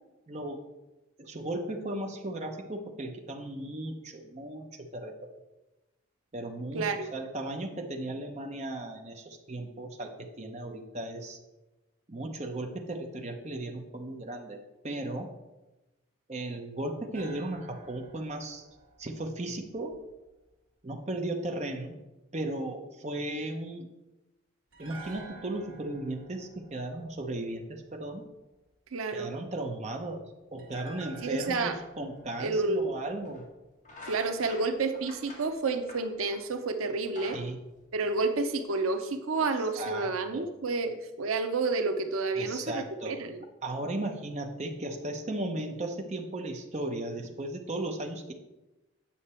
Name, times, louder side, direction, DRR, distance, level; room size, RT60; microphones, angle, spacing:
voice 1, 0.3-0.7 1.2-5.3 6.3-11.4 12.1-14.6 14.8-15.3 16.3-18.6 19.0-20.0 20.8-22.0 22.3-23.9 24.8-28.2 29.1-33.4 34.4-34.5 37.3-37.6 39.8-40.5 42.3-43.2 43.6-48.3, right 1 dB, 35° right, 3 dB, 0.8 m, -36 dB
voice 2, 6.7-7.1 28.9-29.3 31.2-31.8 32.4-32.9 34.0-37.4 37.9-43.4, right 3 dB, 85° right, 7 dB, 0.7 m, -30 dB
sound 1, 17.1-20.3 24.7-27.9 30.6-33.8 34.1-34.2, right 3 dB, 65° right, 1.9 m, -51 dB
sound 2, 33.2-33.5 33.8-36.5 36.9-38.6, left 2 dB, 35° left, 1.8 m, -47 dB
8.6 x 5.9 x 4.3 m, 1.0 s
head